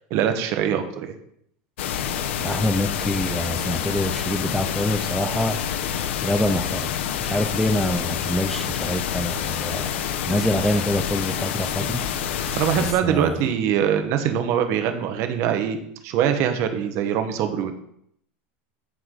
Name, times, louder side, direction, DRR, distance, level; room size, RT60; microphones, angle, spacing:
voice 1, 0.1-1.1 12.5-15.8 16.0-17.7, right 9 dB, 45° right, 6 dB, 1.3 m, -23 dB
sound 1, 1.8-12.9, left 9 dB, 85° left, 0.8 m, -27 dB
voice 2, 2.4-5.6 6.2-6.9 7.2-9.9 10.3-12.1 12.8-13.4, left 1 dB, ahead, 6 dB, 0.4 m, -25 dB
13.5 x 4.8 x 3.9 m, 0.71 s
supercardioid pair, 150°, 6 cm